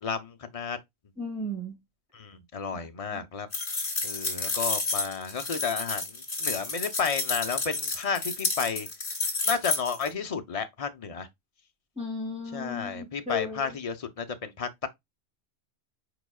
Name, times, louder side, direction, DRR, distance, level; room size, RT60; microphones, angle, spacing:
voice 1, 0.0-0.8 2.1-3.5 4.0-8.9 9.5-11.3 12.5-14.9, left 6 dB, 35° left, 0.7 m, -32 dB
voice 2, 1.2-1.8 2.7-3.2 12.0-13.8, left 2 dB, 5° right, 3.2 m, -35 dB
sound 1, 3.5-10.1, left 3 dB, 70° left, 2.3 m, -30 dB
4.9 x 4.7 x 2.3 m
omnidirectional pair, 1.2 m